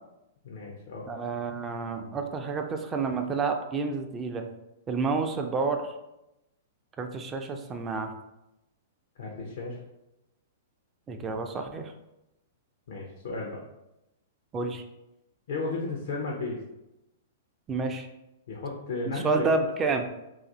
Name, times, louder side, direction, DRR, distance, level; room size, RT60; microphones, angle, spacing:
voice 1, 0.4-1.1 9.2-9.8 12.9-13.6 15.5-16.6 18.5-19.5, left 3 dB, 65° left, -2 dB, 0.6 m, -34 dB
voice 2, 1.1-4.5 4.9-5.9 7.0-8.1 11.1-11.9 14.5-14.8 17.7-18.1 19.1-20.1, right 4 dB, 25° right, 5 dB, 0.4 m, -29 dB
2.6 x 2.4 x 3.9 m, 0.91 s
hypercardioid pair, 110°, 0 cm